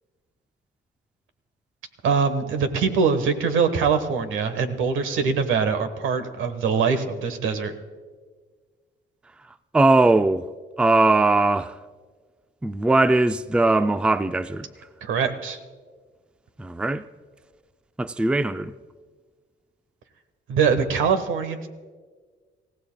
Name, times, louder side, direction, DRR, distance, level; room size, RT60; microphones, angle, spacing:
voice 1, 2.0-7.7 15.0-15.6 20.5-21.7, right 5 dB, 85° right, 1.3 m, -23 dB
voice 2, 9.7-10.5 10.8-11.8 12.6-14.7 16.6-17.0 18.0-18.7, right 2 dB, 5° right, 0.4 m, -20 dB
27.5 x 15.5 x 2.3 m
cardioid pair, 90°, 20 cm